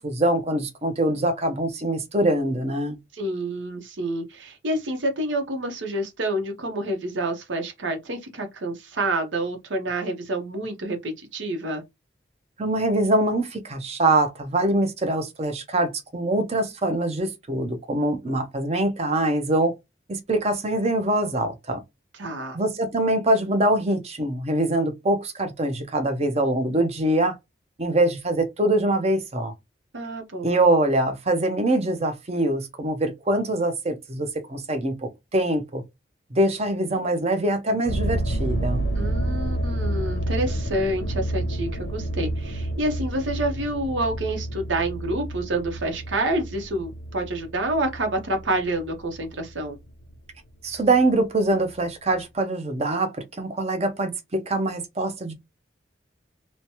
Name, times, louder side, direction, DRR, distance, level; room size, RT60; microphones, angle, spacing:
voice 1, 0.0-3.0 12.6-19.7 20.1-21.8 22.5-27.4 27.8-29.5 30.4-35.8 36.3-38.9 50.6-55.3, right 1 dB, 35° right, 0.6 m, -24 dB
voice 2, 3.1-11.8 22.2-22.6 29.9-30.6 39.0-49.8, right 1 dB, 85° right, 0.8 m, -28 dB
sound 1, 37.9-50.1 50.7-51.1 51.7-51.8 52.1-52.2, right 1 dB, 75° left, 0.6 m, -29 dB
3.1 x 2.1 x 2.7 m
head